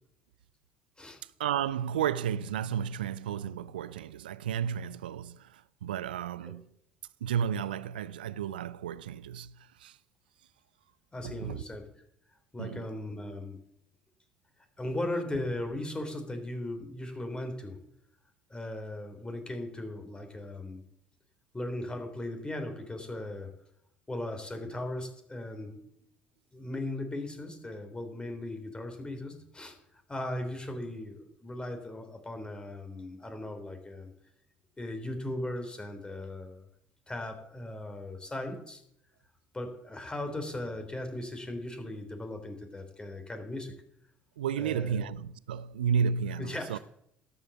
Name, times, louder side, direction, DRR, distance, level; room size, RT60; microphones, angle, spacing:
voice 1, 1.4-6.7 7.2-10.0 11.2-11.6 12.6-12.9 44.4-46.8, right 8 dB, 85° right, 0.4 m, -32 dB
voice 2, 11.1-11.8 12.5-13.6 14.8-17.8 18.5-20.8 21.5-23.5 24.1-25.8 26.5-29.8 30.1-34.1 34.8-36.6 37.1-38.8 39.5-43.7 44.6-45.1 46.4-46.8, left 1 dB, 20° left, 3.4 m, -38 dB
12.5 x 8.2 x 7.2 m
hypercardioid pair, 60°, 5 cm